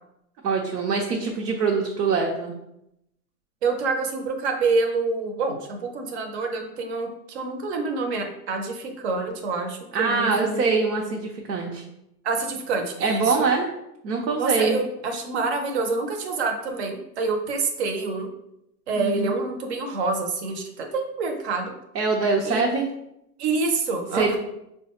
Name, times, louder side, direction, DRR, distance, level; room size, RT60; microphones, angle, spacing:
voice 1, 0.4-2.5 9.9-11.8 13.0-13.7 14.0-14.8 19.0-19.3 21.9-22.9 24.1-24.4, right 4 dB, 85° right, -1 dB, 0.8 m, -24 dB
voice 2, 3.6-10.6 11.1-11.2 12.2-13.4 14.4-18.3 18.9-21.7 22.4-22.7 23.4-24.4, right 3 dB, 45° right, 4 dB, 0.6 m, -27 dB
4.8 x 2.3 x 2.9 m, 0.83 s
hypercardioid pair, 165°, 47 cm